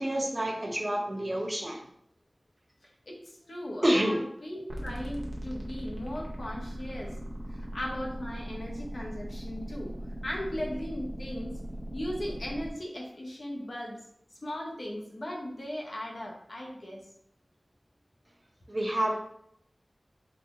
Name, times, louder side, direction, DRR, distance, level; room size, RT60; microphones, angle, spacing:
voice 1, 0.0-1.8 3.8-4.2 18.7-19.2, right 1 dB, 40° right, 1 dB, 0.6 m, -28 dB
voice 2, 3.5-7.1 7.5-9.9 10.2-11.6 11.9-14.0 14.4-17.0, left 1 dB, 75° left, -2 dB, 0.8 m, -37 dB
sound 1, 4.7-12.7, right 1 dB, 85° right, 0.6 m, -39 dB
3.9 x 2.0 x 3.6 m, 0.71 s
wide cardioid pair, 60°, 0 cm